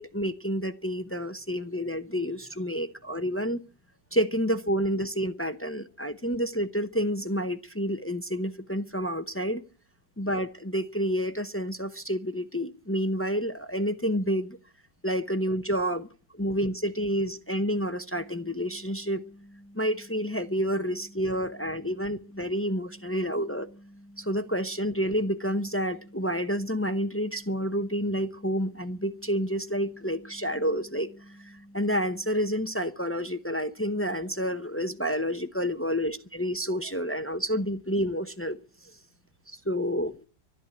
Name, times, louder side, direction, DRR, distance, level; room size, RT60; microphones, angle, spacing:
voice 1, 0.0-3.6 4.1-9.6 10.2-14.6 15.0-16.1 16.4-19.2 19.7-23.7 24.2-31.1 31.7-38.6 39.5-40.2, equal, 15° left, 0.4 m, -29 dB
sound 1, 18.1-32.7, equal, 45° right, 2.2 m, -52 dB
13.0 x 12.0 x 8.5 m
omnidirectional pair, 1.8 m